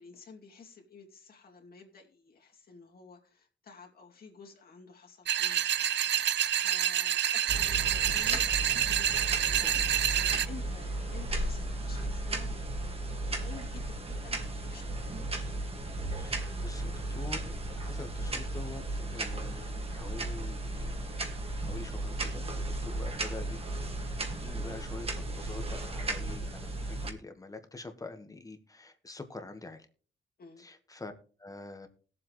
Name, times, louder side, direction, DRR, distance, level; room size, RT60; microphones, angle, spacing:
voice 1, 0.0-5.9 6.5-13.0 13.4-15.2 22.8-23.0 30.4-30.7, left 5 dB, 55° left, 1 dB, 2.6 m, -52 dB
sound 1, 5.3-10.5, right 11 dB, 70° right, 0.5 m, -28 dB
sound 2, 7.5-27.1, right 2 dB, 30° right, 1.8 m, -35 dB
voice 2, 9.4-10.1 16.1-21.2 21.6-23.6 23.9-29.9 30.6-31.1 31.4-31.9, left 3 dB, 20° left, 7 dB, 1.4 m, -46 dB
20.0 x 7.7 x 3.1 m, 0.41 s
wide cardioid pair, 150°, 19 cm